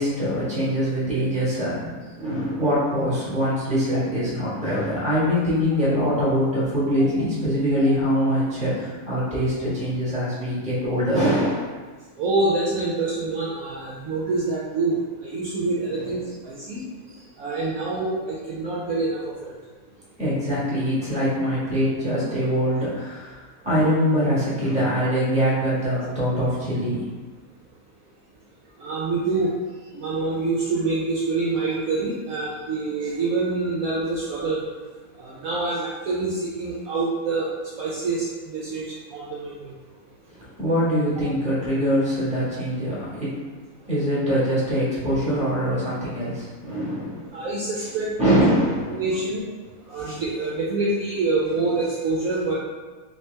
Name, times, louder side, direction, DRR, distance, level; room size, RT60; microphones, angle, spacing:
voice 1, 0.0-1.9 2.2-11.7 15.9-16.0 17.1-17.2 20.2-23.4 23.6-27.0 40.6-43.4 43.9-47.5 48.2-49.0, equal, 5° right, -9 dB, 1.2 m, -23 dB
voice 2, 12.2-15.0 15.2-16.2 16.4-16.8 17.4-19.5 28.8-29.5 29.9-34.6 35.2-37.5 37.8-39.5 47.3-48.3 48.9-49.4 49.9-52.5, right 3 dB, 65° right, -6 dB, 1.0 m, -26 dB
3.6 x 2.9 x 3.3 m, 1.3 s
omnidirectional pair, 1.7 m